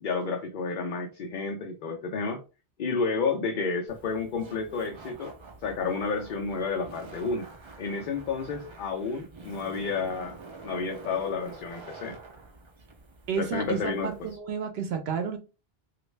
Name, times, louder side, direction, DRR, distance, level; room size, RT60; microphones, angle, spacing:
voice 1, 0.0-2.4 2.8-5.3 5.6-7.5 7.8-10.4 10.6-12.2 13.4-14.1, left 4 dB, 60° left, 2 dB, 0.7 m, -30 dB
Laughter, 3.9-14.4, right 3 dB, 40° right, 0.5 m, -47 dB
voice 2, 13.3-15.4, right 7 dB, 80° right, 6 dB, 0.8 m, -31 dB
3.1 x 2.5 x 3.1 m, 0.31 s
omnidirectional pair, 1.0 m